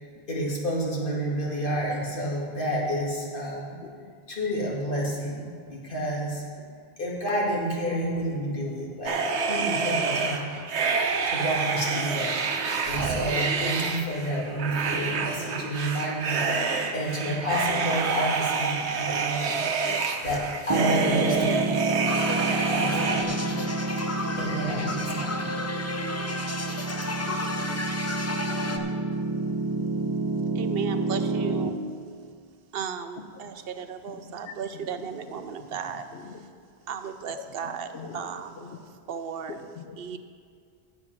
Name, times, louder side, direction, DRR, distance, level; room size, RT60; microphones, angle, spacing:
voice 1, 0.3-3.7 4.3-6.4 7.0-9.2 9.5-10.5 11.2-12.4 12.9-16.4 16.9-19.6 20.2-21.8 22.1-22.4 22.7-23.4 24.2-25.5 26.3-26.4, equal, 55° left, -4 dB, 2.2 m, -29 dB
voice 2, 3.8-4.1 4.4-4.5 5.4-5.5 6.4-6.8 10.8-10.9 12.6-12.7 13.7-13.8 14.3-14.7 18.7-19.3 19.8-20.0 21.7-21.9 31.5-31.6 32.0-32.1 33.2-33.5 33.8-35.5 35.7-35.8 36.1-36.4 37.3-37.5 37.9-38.3 38.6-38.8 39.5-40.0, left 6 dB, 80° left, 5 dB, 1.0 m, -44 dB
sound 1, 9.1-23.2, right 5 dB, 90° right, 1.1 m, -28 dB
Piano, 20.7-31.7, right 3 dB, 40° right, 0.4 m, -29 dB
sound 2, 22.0-28.8, left 2 dB, 20° left, 0.5 m, -32 dB
voice 3, 30.5-31.9 32.7-36.1 36.9-38.7 39.1-39.6 40.0-40.2, right 7 dB, 65° right, 9 dB, 0.7 m, -35 dB
9.7 x 7.9 x 5.8 m, 2.2 s
omnidirectional pair, 1.1 m